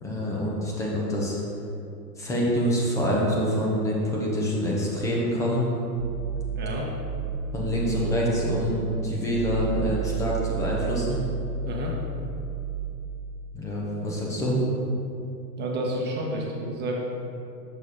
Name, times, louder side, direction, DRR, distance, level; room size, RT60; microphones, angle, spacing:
voice 1, 0.0-1.4 2.2-5.7 7.5-11.2 13.5-14.6, equal, 5° left, -4 dB, 0.4 m, -26 dB
sound 1, 6.0-12.9, right 6 dB, 55° right, 0.5 m, -32 dB
voice 2, 6.5-6.9 11.6-11.9 15.6-17.0, right 1 dB, 20° right, -2 dB, 1.1 m, -30 dB
6.7 x 6.0 x 3.7 m, 2.7 s
hypercardioid pair, 130°, 50 cm